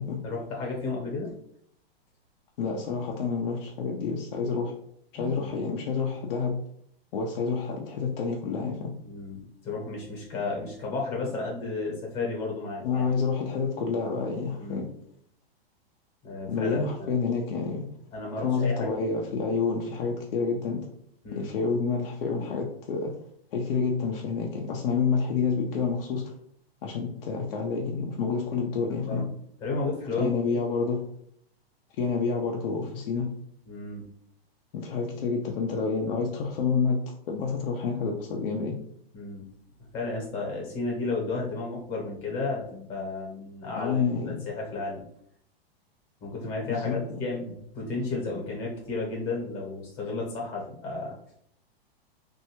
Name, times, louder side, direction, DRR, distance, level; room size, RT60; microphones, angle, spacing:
voice 1, 0.2-1.3 5.2-5.5 9.0-13.0 14.6-14.9 16.2-17.1 18.1-19.0 21.2-21.5 28.9-29.3 29.6-30.6 33.7-34.0 39.1-39.4 39.9-45.0 46.2-51.2, left 3 dB, 35° left, -2 dB, 1.0 m, -33 dB
voice 2, 2.6-4.7 5.1-6.6 7.1-8.9 12.8-14.9 16.5-17.9 18.4-20.9 21.3-23.2 23.5-26.3 26.8-29.3 30.2-31.0 32.0-33.3 34.7-37.0 37.3-38.8 43.8-44.3 46.7-47.2, left 5 dB, 65° left, 0 dB, 0.6 m, -28 dB
3.2 x 2.6 x 2.9 m, 0.68 s
hypercardioid pair, 150°, 31 cm